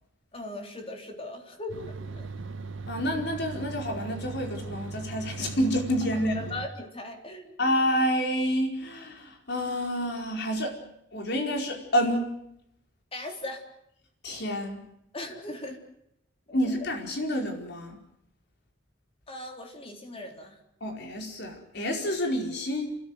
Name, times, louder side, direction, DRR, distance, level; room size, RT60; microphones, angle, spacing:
voice 1, 0.3-2.3 6.3-7.6 13.1-13.6 15.1-15.8 16.5-16.6 19.3-20.6, left 2 dB, 30° left, 4 dB, 3.7 m, -39 dB
sound 1, 1.7-6.7, right 4 dB, 80° right, 1.3 m, -38 dB
voice 2, 2.9-6.5 7.6-10.8 11.1-12.3 14.2-14.8 16.5-18.0 20.8-23.0, equal, 60° left, 3 dB, 4.8 m, -28 dB
29.5 x 13.5 x 9.4 m, 0.77 s
head